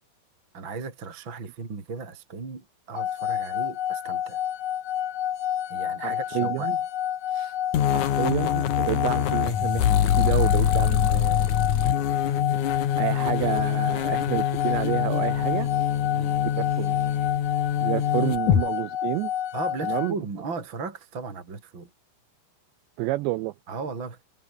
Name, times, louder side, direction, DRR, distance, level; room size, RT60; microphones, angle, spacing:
voice 1, 0.5-4.4 5.7-6.7 7.3-7.6 16.1-16.4 19.5-21.9 23.7-24.2, right 4 dB, 25° right, 4.0 m, -36 dB
sound 1, 2.9-20.1, left 10 dB, 70° left, 1.7 m, -29 dB
voice 2, 6.0-6.8 7.9-9.9 10.2-11.5 13.0-15.7 16.6-17.0 17.8-19.3 19.8-20.2 23.0-23.5, right 18 dB, 90° right, 2.5 m, -29 dB
sound 2, 7.7-18.6, left 10 dB, 55° left, 2.3 m, -24 dB
omnidirectional pair, 5.9 m